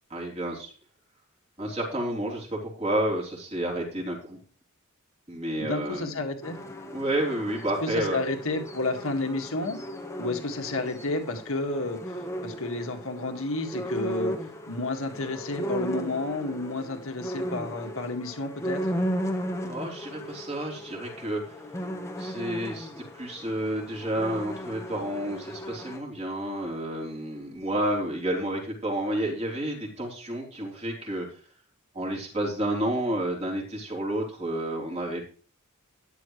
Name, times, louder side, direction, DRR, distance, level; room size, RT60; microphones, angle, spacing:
voice 1, 0.1-0.7 1.6-4.4 5.3-6.1 6.9-8.2 19.6-21.7 22.2-31.4 31.9-35.3, right 1 dB, 30° right, -1 dB, 3.7 m, -30 dB
voice 2, 5.6-6.6 7.8-9.8 10.2-14.4 14.7-18.8, left 2 dB, 65° left, 4 dB, 2.1 m, -31 dB
sound 1, 6.4-26.0, equal, 15° left, 1.2 m, -36 dB
13.0 x 10.5 x 3.2 m, 0.39 s
head